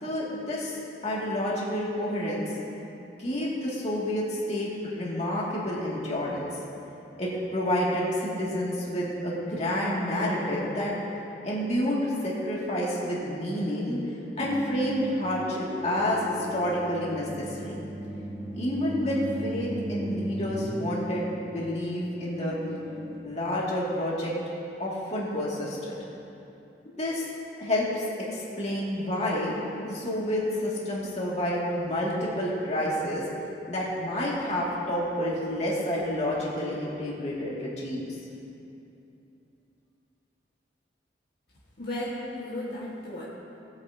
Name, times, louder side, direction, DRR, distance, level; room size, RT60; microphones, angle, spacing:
voice 1, 0.0-0.8 1.0-2.5 3.2-6.5 7.2-10.9 11.4-14.0 14.4-17.8 18.5-22.6 23.2-24.3 24.8-26.0 26.8-27.2 27.6-28.0 28.3-29.5 29.8-33.2 33.7-38.1, left 1 dB, 40° left, -6 dB, 2.3 m, -29 dB
sound 1, 14.4-23.2, equal, ahead, 1.4 m, -37 dB
voice 2, 41.8-43.2, left 1 dB, 60° left, -7 dB, 1.6 m, -34 dB
18.5 x 8.6 x 2.9 m, 2.8 s
head